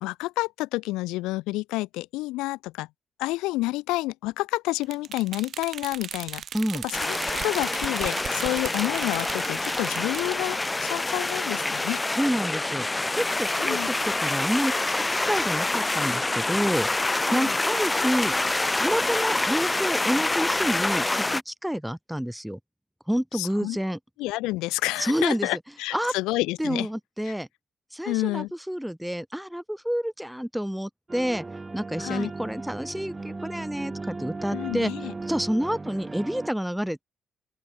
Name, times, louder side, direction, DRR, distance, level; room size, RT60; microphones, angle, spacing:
voice 1, 0.0-2.9 3.2-6.4 6.8-12.0 13.6-13.9 17.3-17.5 23.3-23.8 24.2-26.9 27.3-27.4 28.1-28.5 32.0-32.3 34.5-35.1, left 20 dB, 85° left, 0.5 m, -29 dB
sound 1, 4.8-10.4, right 8 dB, 60° right, 2.2 m, -37 dB
voice 2, 6.5-6.9 12.1-12.9 13.1-16.9 17.3-18.4 18.8-22.6 23.1-24.0 25.0-25.5 25.9-26.1 26.6-27.5 27.9-31.4 31.7-34.9 35.3-37.0, equal, 5° right, 1.7 m, -28 dB
sound 2, 6.9-21.4, left 2 dB, 20° left, 0.7 m, -26 dB
sound 3, 31.1-36.5, right 3 dB, 25° right, 0.9 m, -37 dB
open air
supercardioid pair, 60°, 0 cm